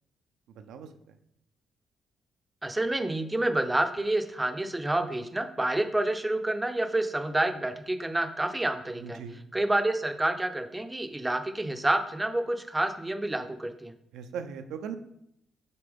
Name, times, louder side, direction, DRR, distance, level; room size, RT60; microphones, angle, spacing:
voice 1, 0.6-0.9 9.0-9.4 14.1-15.0, right 7 dB, 85° right, 7 dB, 0.5 m, -38 dB
voice 2, 2.6-9.2 9.5-13.9, right 1 dB, 15° right, 7 dB, 0.6 m, -28 dB
6.9 x 4.3 x 3.5 m, 0.77 s
cardioid pair, 90°, 0 cm